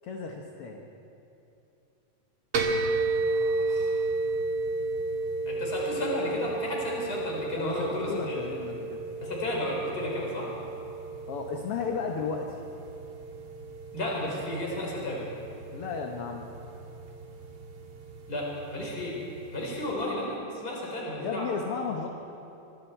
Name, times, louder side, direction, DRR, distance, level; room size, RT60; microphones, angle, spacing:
voice 1, 0.0-0.8 7.6-9.0 11.3-12.6 15.7-16.5 21.2-22.1, left 5 dB, 60° left, 2 dB, 1.7 m, -34 dB
sound 1, 2.5-19.9, right 3 dB, 45° right, 2.1 m, -33 dB
voice 2, 3.3-4.1 5.4-8.4 9.2-10.5 13.9-15.2 18.3-19.2 19.5-21.5, left 1 dB, 25° left, -3 dB, 4.9 m, -33 dB
25.5 x 23.0 x 4.6 m, 2.8 s
omnidirectional pair, 3.8 m